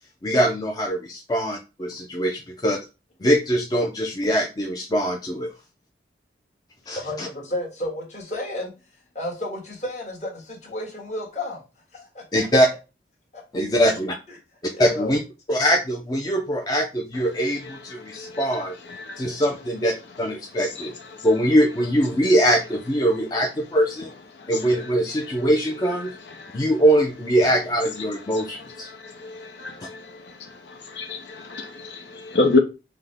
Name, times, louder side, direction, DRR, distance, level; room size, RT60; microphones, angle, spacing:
voice 1, 0.2-2.8 3.2-5.5 6.9-7.3 12.3-12.7 13.5-14.1 14.8-15.2 15.5-18.8 19.2-19.9 20.2-20.9 21.2-24.1 24.5-26.1 26.5-28.9, equal, 20° left, 2 dB, 0.4 m, -22 dB
voice 2, 6.9-8.7 9.1-11.6 11.9-12.5 13.3-13.4 13.7-13.8 14.7-15.2, left 1 dB, 40° left, -3 dB, 1.5 m, -32 dB
voice 3, 19.0-19.3 29.2-30.0 30.9-32.6, left 3 dB, 85° left, 5 dB, 0.6 m, -25 dB
5.8 x 2.1 x 3.4 m, 0.29 s
head